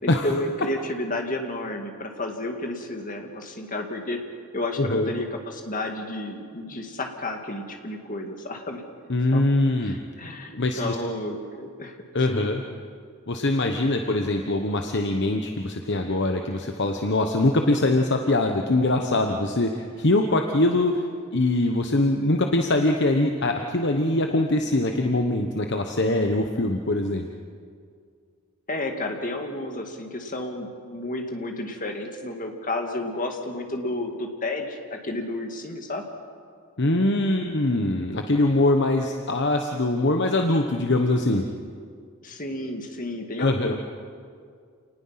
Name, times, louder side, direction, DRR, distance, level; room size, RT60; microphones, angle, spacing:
voice 1, 0.0-4.2 4.5-8.8 9.3-9.4 9.8-12.0 12.3-12.5 28.7-36.1 42.2-43.7, left 2 dB, 40° left, 3 dB, 2.1 m, -31 dB
voice 2, 4.8-5.1 9.1-10.0 10.5-11.0 12.1-12.6 13.3-21.0 21.3-27.3 36.8-41.4 43.4-43.7, left 2 dB, 55° left, 4 dB, 1.1 m, -23 dB
28.0 x 19.5 x 5.8 m, 2.2 s
head